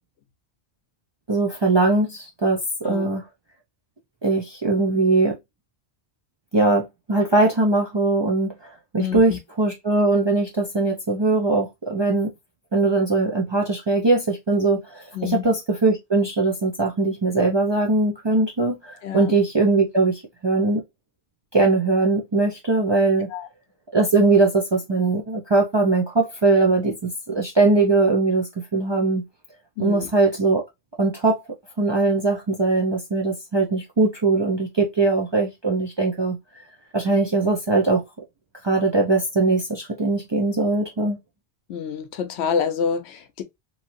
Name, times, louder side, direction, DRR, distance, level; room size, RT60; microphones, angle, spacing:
voice 1, 1.3-3.2 4.2-5.4 6.5-8.5 8.9-12.3 12.7-20.8 21.5-23.3 23.9-29.2 29.8-30.6 31.0-31.4 31.8-36.4 36.9-38.0 38.6-41.2, right 3 dB, 40° right, 0.4 m, -21 dB
voice 2, 9.0-9.4 15.1-15.5 19.0-19.4 23.3-23.5 29.8-30.1 41.7-43.4, left 7 dB, 90° left, 0.9 m, -27 dB
3.0 x 2.7 x 2.5 m
omnidirectional pair, 1.1 m